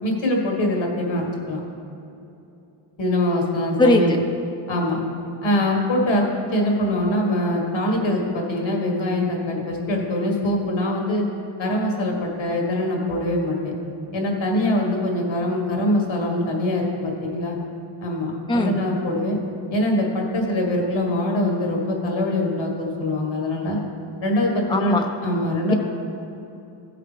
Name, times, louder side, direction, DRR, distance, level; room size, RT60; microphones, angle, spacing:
voice 1, 0.0-1.6 3.0-4.2 4.7-5.0 5.4-11.3 11.6-13.7 14.1-17.6 18.0-19.4 19.7-23.8 24.2-25.7, left 1 dB, 75° left, 0 dB, 2.0 m, -23 dB
voice 2, 3.8-4.2 18.5-18.7 24.7-25.1, left 2 dB, 10° left, 2 dB, 0.8 m, -18 dB
15.0 x 6.0 x 3.3 m, 2.8 s
cardioid pair, 60°, 47 cm